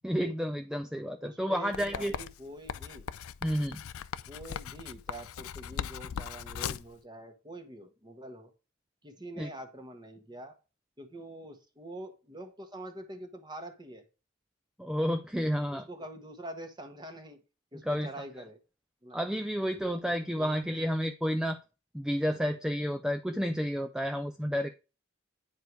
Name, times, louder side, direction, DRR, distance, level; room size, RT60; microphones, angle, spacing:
voice 1, 0.0-2.1 3.4-3.8 9.4-9.5 14.8-15.9 17.8-18.1 19.1-21.6 21.9-24.7, equal, 5° right, 7 dB, 0.4 m, -31 dB
voice 2, 1.2-3.1 4.3-8.5 9.0-10.5 11.0-14.0 15.7-17.4 17.7-18.6 19.0-19.2 20.3-20.6, right 1 dB, 20° right, 6 dB, 1.3 m, -45 dB
Writing, 1.7-6.9, left 8 dB, 80° left, 0.4 m, -39 dB
9.4 x 4.6 x 4.7 m, 0.31 s
head